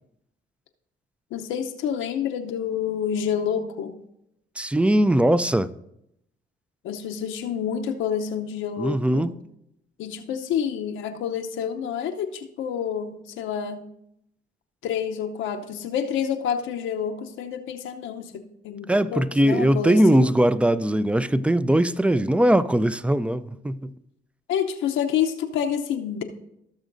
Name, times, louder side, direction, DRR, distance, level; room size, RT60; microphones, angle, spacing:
voice 1, 1.3-4.0 6.8-9.3 10.0-13.9 14.8-20.3 24.5-26.2, left 8 dB, 90° left, 0.8 m, -28 dB
voice 2, 4.6-5.7 8.8-9.4 18.9-23.9, right 1 dB, 5° right, 0.4 m, -20 dB
17.0 x 6.4 x 2.6 m
cardioid pair, 90°, 20 cm